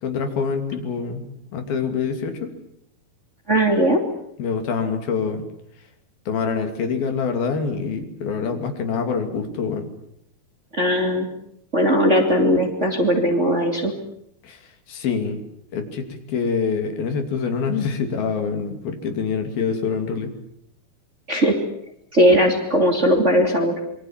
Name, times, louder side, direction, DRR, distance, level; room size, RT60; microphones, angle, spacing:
voice 1, 0.0-1.3 1.5-2.5 4.4-5.4 6.3-9.9 14.4-14.6 14.9-15.4 15.7-20.3, left 5 dB, 75° left, 6 dB, 4.6 m, -25 dB
voice 2, 3.5-4.0 10.7-11.3 11.7-13.9 21.3-21.6 22.1-23.7, equal, 20° right, 3 dB, 2.7 m, -18 dB
26.5 x 24.0 x 7.4 m, 0.74 s
omnidirectional pair, 4.3 m